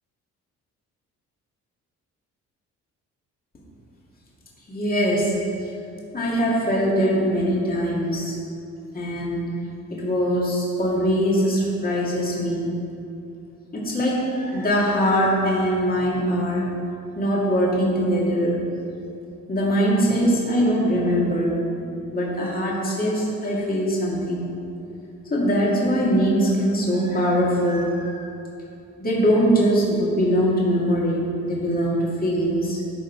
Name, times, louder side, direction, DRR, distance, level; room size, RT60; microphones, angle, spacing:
voice 1, 4.7-5.4 6.1-8.4 8.9-9.4 9.9-12.7 13.7-16.8 17.2-18.7 19.5-21.6 22.1-24.5 25.3-28.3 29.0-32.8, equal, 30° left, -5 dB, 2.3 m, -22 dB
13.0 x 5.0 x 4.7 m, 2.7 s
cardioid pair, 90°, 30 cm